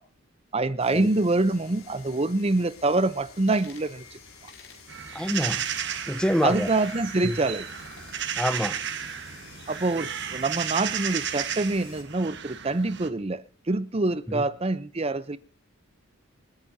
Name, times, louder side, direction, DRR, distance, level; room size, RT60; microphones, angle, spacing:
voice 1, 0.5-4.2 6.4-7.7 9.7-15.4, right 2 dB, 30° right, 0.7 m, -25 dB
sound 1, 0.8-12.0, left 5 dB, 80° left, 4.4 m, -49 dB
sound 2, 3.5-3.9 4.5-4.8 5.3-5.8 6.5-7.0 7.7-8.3, left 5 dB, 60° left, 5.2 m, -51 dB
sound 3, 4.9-13.1, right 9 dB, 55° right, 1.3 m, -33 dB
voice 2, 5.1-5.6 6.1-6.7 7.2-7.4 8.4-8.8 14.3-14.4, equal, 5° left, 0.7 m, -26 dB
28.0 x 9.9 x 2.8 m
head